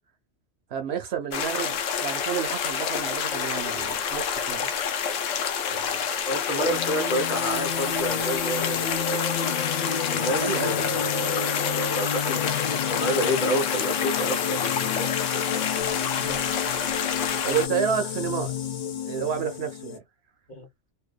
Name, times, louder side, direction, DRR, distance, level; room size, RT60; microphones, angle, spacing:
voice 1, 0.7-4.7 10.4-10.8 16.2-16.4 17.4-18.5 19.1-20.0, right 8 dB, 65° right, 0.8 m, -30 dB
sound 1, 1.3-17.7, left 7 dB, 85° left, 0.9 m, -28 dB
voice 2, 5.7-9.4 10.1-15.7 20.5-20.7, equal, 45° left, 0.9 m, -30 dB
sound 2, 6.6-20.0, left 8 dB, 60° left, 0.4 m, -31 dB
2.7 x 2.1 x 2.3 m
omnidirectional pair, 1.2 m